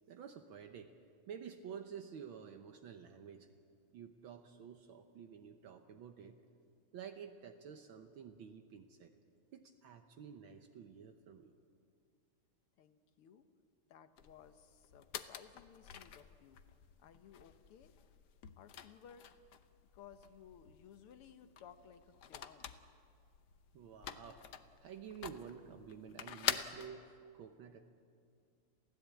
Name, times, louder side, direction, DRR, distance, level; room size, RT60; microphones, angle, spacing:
voice 1, 0.1-0.9 1.3-3.5 3.9-6.4 6.9-9.1 9.5-11.5 23.7-24.5 24.8-27.8, right 7 dB, 70° right, 6 dB, 1.7 m, -51 dB
voice 2, 12.8-13.5 13.9-16.6 17.0-17.9 18.6-19.3 19.9-22.7, left 8 dB, 85° left, 9 dB, 2.0 m, -59 dB
sound 1, 14.2-26.9, left 9 dB, 60° left, 1.2 m, -47 dB
28.0 x 16.0 x 8.4 m, 2.3 s
omnidirectional pair, 2.4 m